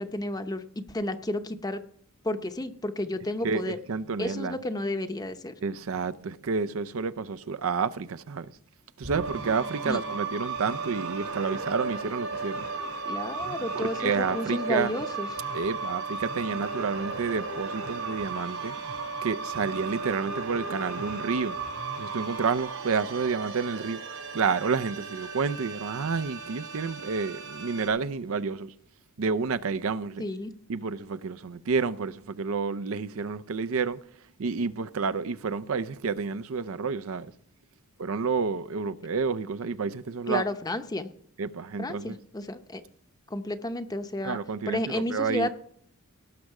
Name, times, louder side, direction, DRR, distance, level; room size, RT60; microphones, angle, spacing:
voice 1, 0.0-1.8 2.2-3.8 4.2-5.5 9.9-10.0 13.1-15.3 30.2-30.5 40.3-41.1 41.8-42.8 43.3-44.4 44.7-45.5, left 1 dB, 15° left, 0.7 m, -32 dB
voice 2, 3.4-4.6 5.6-8.5 9.0-12.7 13.7-14.9 15.5-18.8 19.2-21.6 22.0-28.7 29.2-30.2 30.7-34.0 34.4-37.3 38.0-40.4 41.4-42.2 44.2-45.5, right 5 dB, 65° right, 0.5 m, -30 dB
sound 1, 9.0-27.9, right 4 dB, 85° right, 4.6 m, -35 dB
18.0 x 6.5 x 4.8 m
head